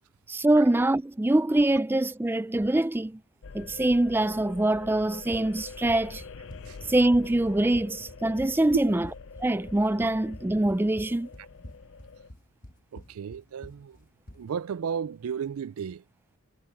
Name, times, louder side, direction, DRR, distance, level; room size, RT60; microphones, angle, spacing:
voice 1, 0.3-3.2 3.5-6.2 6.9-9.1 9.4-11.3, right 1 dB, 10° right, 0.3 m, -24 dB
sound 1, 3.4-12.3, left 4 dB, 60° left, 0.5 m, -45 dB
Run, 5.0-14.5, left 1 dB, 35° left, 1.3 m, -47 dB
voice 2, 12.9-14.0 14.4-16.0, right 7 dB, 85° right, 0.4 m, -34 dB
head